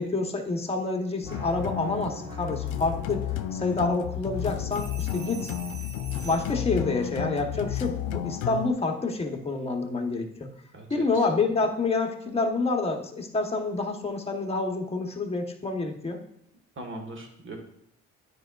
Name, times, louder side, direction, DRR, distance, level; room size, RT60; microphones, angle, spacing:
voice 1, 0.0-3.2 3.5-5.5 6.2-10.5 10.9-16.2, left 3 dB, 20° left, 3 dB, 1.0 m, -28 dB
sound 1, 1.2-8.7, left 10 dB, 85° left, 0.5 m, -32 dB
sound 2, 1.2-7.2, equal, 15° right, 1.2 m, -48 dB
sound 3, 4.7-6.7 9.1-9.3, right 4 dB, 75° right, 1.4 m, -44 dB
voice 2, 10.7-11.3 16.7-17.6, right 2 dB, 40° right, 4 dB, 1.5 m, -40 dB
9.5 x 4.6 x 2.4 m, 0.73 s
cardioid pair, 90°, 30 cm